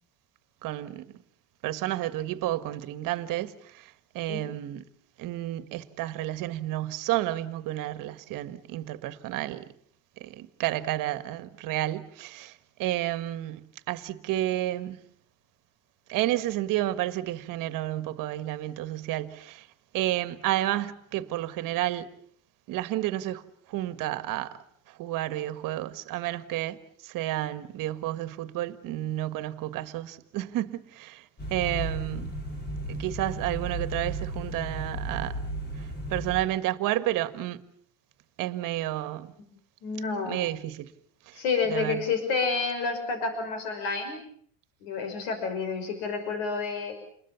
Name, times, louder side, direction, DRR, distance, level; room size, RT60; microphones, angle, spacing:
voice 1, 0.6-1.1 1.6-4.8 5.2-9.7 10.2-15.0 16.1-19.7 19.9-22.1 22.7-24.6 24.9-26.8 27.0-32.4 32.9-35.4 36.1-37.6 38.4-39.3 40.3-40.9 41.3-41.4 41.7-42.0, right 15 dB, 50° right, 1.6 m, -31 dB
voice 2, 4.3-4.6 39.8-40.5 41.3-44.2 44.8-47.0, left 4 dB, 70° left, 6.1 m, -29 dB
sound 1, 31.4-36.4, right 1 dB, 25° left, 4.2 m, -34 dB
29.0 x 21.5 x 7.1 m
cardioid pair, 145°, 40 cm